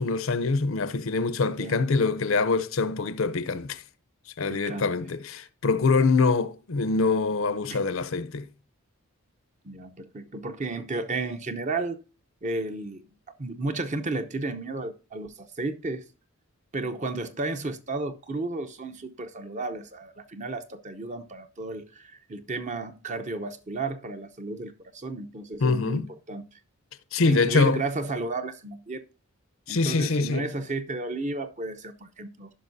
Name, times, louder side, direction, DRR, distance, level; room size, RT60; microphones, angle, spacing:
voice 1, 0.0-3.8 4.4-8.5 25.6-26.1 27.1-27.8 29.7-30.5, left 4 dB, 65° left, 0.6 m, -24 dB
voice 2, 1.4-1.9 4.5-4.9 7.7-7.9 9.6-12.0 12.4-13.1 13.4-16.0 16.7-26.4 27.2-29.0 29.7-32.5, right 3 dB, 35° right, 0.7 m, -33 dB
15.0 x 5.6 x 2.6 m
head